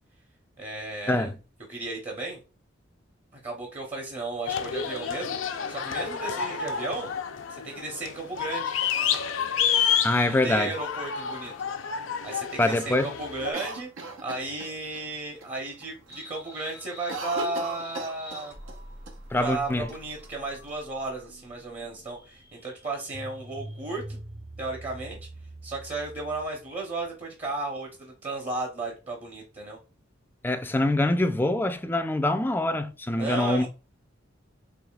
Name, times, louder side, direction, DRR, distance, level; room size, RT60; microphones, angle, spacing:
voice 1, 0.6-1.3 1.7-2.4 3.3-7.1 7.5-8.7 10.2-11.5 12.2-13.9 14.2-18.6 19.4-24.2 24.6-25.2 25.6-29.8 33.2-33.7, right 2 dB, 35° right, 0.9 m, -34 dB
sound 1, 4.5-13.5, left 7 dB, 85° left, 0.5 m, -29 dB
voice 2, 10.0-10.7 12.6-13.1 19.3-19.9 30.4-33.7, left 1 dB, 10° left, 0.3 m, -24 dB
Cough, 13.5-15.0 15.4-15.5 15.8-16.2 16.5-18.8 19.1-19.2 19.9-20.7, right 2 dB, 90° right, 1.0 m, -37 dB
sound 2, 16.1-26.7, right 1 dB, 60° right, 1.1 m, -45 dB
4.8 x 3.0 x 2.3 m
head